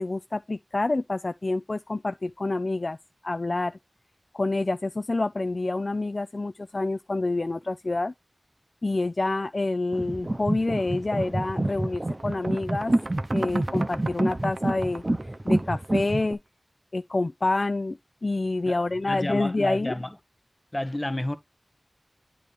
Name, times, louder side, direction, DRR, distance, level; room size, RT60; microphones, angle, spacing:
voice 1, 0.0-3.0 3.2-3.8 4.3-8.1 8.8-12.9 13.3-15.0 15.4-16.4 16.9-19.9, left 2 dB, 60° left, 0.3 m, -27 dB
sound 1, 9.9-16.3, right 1 dB, 40° right, 0.7 m, -27 dB
sound 2, 10.8-11.0 11.4-16.3, right 3 dB, 80° right, 0.6 m, -39 dB
voice 2, 18.6-20.1 20.7-21.3, left 1 dB, 30° left, 1.1 m, -31 dB
8.5 x 3.0 x 5.2 m
wide cardioid pair, 40°, 0 cm